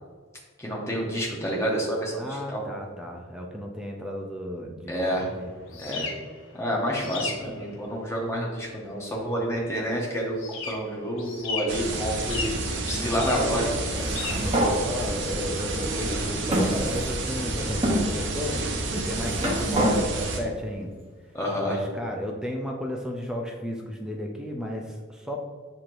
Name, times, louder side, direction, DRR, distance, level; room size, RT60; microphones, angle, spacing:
voice 1, 0.6-2.6 4.9-5.3 5.8-6.1 6.5-10.4 10.7-12.6 12.9-13.7 14.0-14.5 21.3-21.8, equal, 15° left, -3 dB, 0.8 m, -29 dB
voice 2, 2.2-5.8 7.4-7.8 12.9-13.4 14.4-18.6 18.9-20.9 21.6-25.4, left 1 dB, 5° right, 0 dB, 0.3 m, -34 dB
sound 1, 5.1-18.2, left 4 dB, 65° left, 0.6 m, -39 dB
sound 2, 11.7-20.4, right 2 dB, 55° right, 0.6 m, -30 dB
sound 3, 13.9-14.7 15.6-15.7 16.5-17.3 17.8-18.0 18.9-20.0, right 1 dB, 30° right, 0.8 m, -26 dB
6.3 x 2.9 x 2.5 m, 1.5 s
head